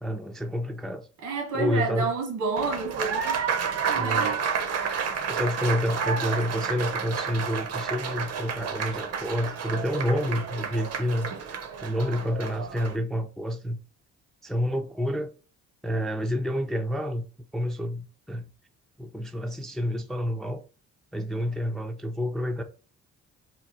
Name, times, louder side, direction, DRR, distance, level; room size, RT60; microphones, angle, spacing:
voice 1, 0.0-1.1 1.5-2.1 4.0-4.4 5.3-11.3 11.8-13.8 14.4-15.3 15.8-17.2 17.5-18.5 19.0-20.6 21.1-22.6, equal, ahead, 0.3 m, -29 dB
voice 2, 1.2-3.4 3.9-4.4, right 4 dB, 75° right, 1.4 m, -30 dB
Applause, 2.6-13.0, right 6 dB, 55° right, 0.7 m, -30 dB
3.0 x 2.3 x 3.9 m
cardioid pair, 90°, 30 cm